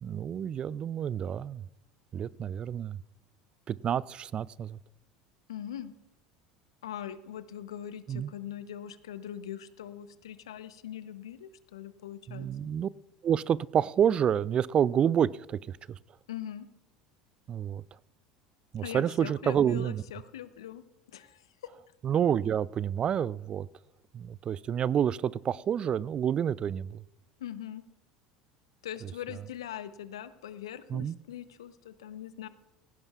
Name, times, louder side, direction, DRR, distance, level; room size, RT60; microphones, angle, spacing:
voice 1, 0.0-1.6 2.1-3.0 3.7-4.8 8.1-8.3 12.3-12.9 13.2-15.8 17.5-17.8 18.7-20.0 22.0-23.7 24.1-27.0 30.9-31.2, right 9 dB, 35° right, 0.4 m, -28 dB
voice 2, 5.5-5.9 6.8-12.5 16.3-16.7 18.8-20.8 21.1-21.4 27.4-27.8 28.8-32.5, left 10 dB, 80° left, 0.7 m, -41 dB
18.0 x 16.0 x 2.4 m
hypercardioid pair, 75°, 3 cm